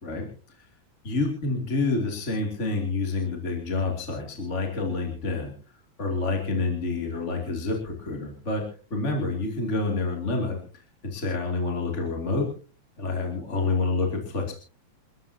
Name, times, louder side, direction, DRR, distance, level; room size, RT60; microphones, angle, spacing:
voice 1, 1.0-5.5 6.0-8.6 8.9-10.6 11.0-12.5 13.0-14.5, left 3 dB, 25° left, 1 dB, 2.9 m, -28 dB
29.5 x 13.0 x 2.8 m, 0.37 s
omnidirectional pair, 3.4 m